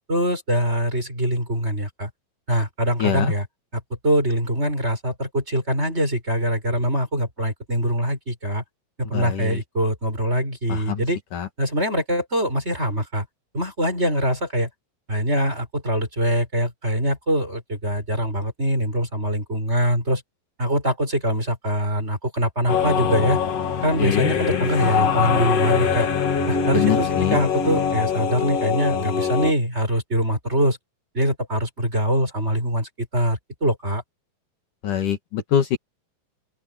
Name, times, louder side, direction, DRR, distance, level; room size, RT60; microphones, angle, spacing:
voice 1, 0.1-2.1 2.5-3.5 3.7-8.6 9.0-11.2 11.6-13.3 13.5-14.7 15.1-20.2 20.6-23.4 23.8-26.1 26.5-30.8 31.1-34.0, equal, 15° right, 6.6 m, -23 dB
voice 2, 3.0-3.3 9.1-9.6 10.7-11.0 11.3-11.5 24.0-24.3 26.7-27.4 34.8-35.8, left 9 dB, 65° left, 3.2 m, -24 dB
sound 1, 22.7-29.5, left 6 dB, 50° left, 3.0 m, -23 dB
open air
omnidirectional pair, 4.1 m